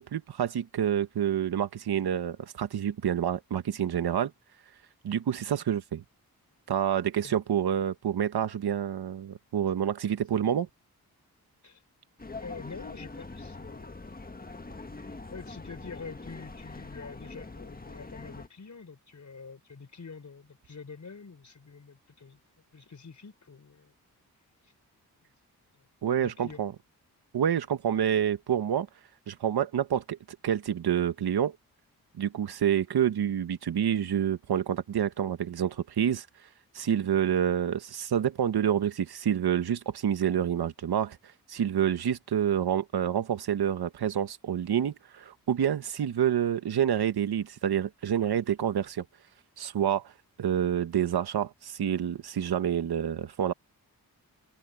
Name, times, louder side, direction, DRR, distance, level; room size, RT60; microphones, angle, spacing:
voice 1, 0.0-4.3 5.0-6.0 6.7-10.7 26.0-26.7 27.3-28.9 29.3-30.2 30.4-31.5 32.1-36.3 36.7-41.2 41.5-49.0 49.6-50.1 50.4-53.5, right 9 dB, 80° right, 1.5 m, -28 dB
sound 1, 12.2-18.5, left 3 dB, 25° left, 1.7 m, -43 dB
voice 2, 12.4-14.1 15.3-22.4 22.7-23.9 24.6-24.7 25.7-25.9 26.2-26.7 37.1-37.3, left 5 dB, 50° left, 4.3 m, -46 dB
cardioid pair, 55°, 38 cm